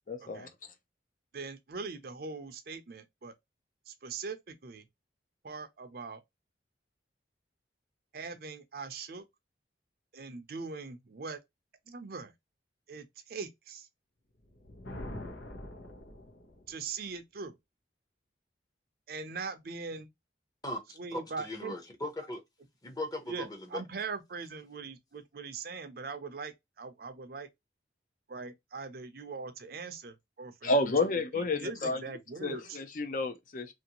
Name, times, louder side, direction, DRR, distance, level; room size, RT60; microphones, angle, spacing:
voice 1, 0.1-0.5 30.6-32.0 32.4-33.7, left 2 dB, 45° left, 0.5 m, -30 dB
voice 2, 1.3-3.3 3.9-4.8 5.4-6.2 8.1-9.2 10.1-11.4 11.9-12.3 12.9-13.9 16.7-17.6 19.1-20.1 21.0-21.8 23.3-27.5 28.3-30.9 31.4-32.8, right 4 dB, 55° right, 0.5 m, -41 dB
Thunder, 14.4-16.8, left 1 dB, 90° left, 0.9 m, -44 dB
voice 3, 20.6-22.4 22.8-23.8, left 1 dB, 20° left, 0.8 m, -38 dB
3.0 x 2.6 x 2.9 m
head